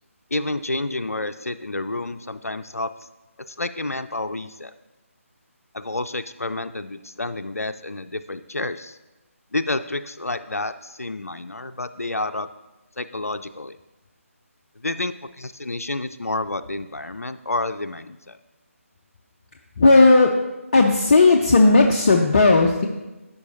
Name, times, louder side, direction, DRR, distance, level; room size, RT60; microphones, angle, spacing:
voice 1, 0.3-2.9 3.5-4.7 5.7-9.0 9.5-12.5 13.0-13.8 14.8-18.4, left 2 dB, 85° left, 10 dB, 0.4 m, -29 dB
voice 2, 19.8-20.3 20.7-22.9, left 3 dB, 30° left, 1 dB, 0.5 m, -15 dB
14.0 x 5.1 x 2.8 m, 1.1 s
figure-of-eight pair, 150°, 8 cm